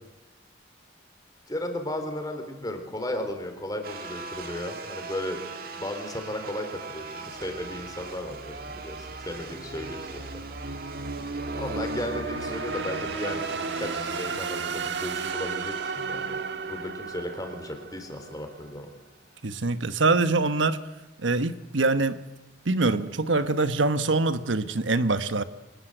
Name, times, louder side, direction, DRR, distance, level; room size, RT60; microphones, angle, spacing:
voice 1, 1.5-10.4 11.5-16.4 16.7-18.9, left 1 dB, 20° left, 5 dB, 3.7 m, -35 dB
sound 1, 3.8-18.7, right 4 dB, 50° right, 2.2 m, -42 dB
sound 2, 7.4-18.4, right 4 dB, 70° right, 1.5 m, -34 dB
voice 2, 19.4-20.8 21.2-22.2 22.6-25.4, right 3 dB, 90° right, 12 dB, 1.2 m, -24 dB
25.0 x 20.0 x 7.9 m, 1.1 s
head